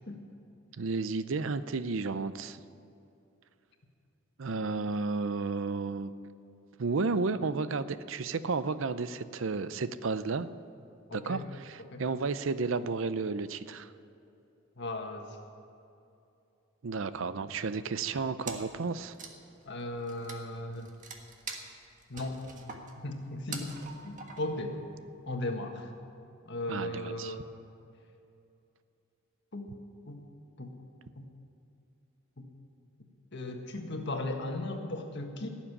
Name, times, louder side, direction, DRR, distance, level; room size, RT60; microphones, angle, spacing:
voice 1, 0.8-2.6 4.4-6.1 6.8-10.5 11.1-13.9 16.8-19.1 26.7-27.3, right 4 dB, 65° right, 14 dB, 0.5 m, -32 dB
voice 2, 11.1-11.4 11.9-12.0 14.8-15.3 19.6-20.9 22.1-22.7 23.0-24.8 25.3-25.9 26.4-27.4 29.5-29.7 30.1-30.2 30.6-30.7 31.2-31.3 32.4-32.5 33.3-35.5, left 1 dB, 60° left, 3 dB, 1.6 m, -37 dB
Wood, 18.4-18.8 19.1-24.7, right 4 dB, 40° right, 1.5 m, -44 dB
17.0 x 7.4 x 9.9 m, 2.7 s
head